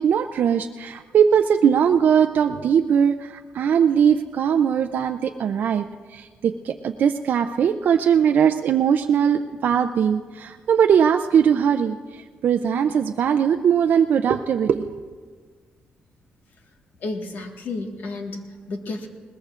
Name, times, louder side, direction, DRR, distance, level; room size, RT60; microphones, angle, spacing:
voice 1, 0.0-15.1, right 8 dB, 60° right, 6 dB, 0.4 m, -20 dB
voice 2, 17.0-19.1, left 3 dB, 65° left, 3 dB, 1.6 m, -32 dB
21.0 x 19.5 x 2.5 m, 1.5 s
cardioid pair, 125°, 3 cm